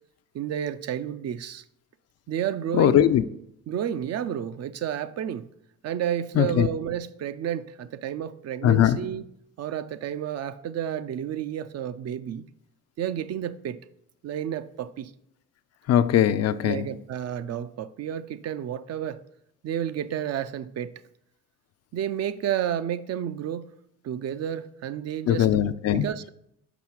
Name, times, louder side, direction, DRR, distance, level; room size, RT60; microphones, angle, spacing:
voice 1, 0.3-1.6 2.3-3.0 3.7-5.5 5.8-9.2 9.6-12.4 13.0-13.8 14.2-15.1 16.6-19.2 19.6-20.9 21.9-23.7 24.0-25.5 25.9-26.3, right 10 dB, 55° right, 0.5 m, -31 dB
voice 2, 2.7-3.2 6.4-6.7 8.6-9.0 15.9-16.9 25.3-26.1, left 11 dB, 55° left, 0.4 m, -20 dB
6.0 x 4.6 x 5.8 m
cardioid pair, 90°, 30 cm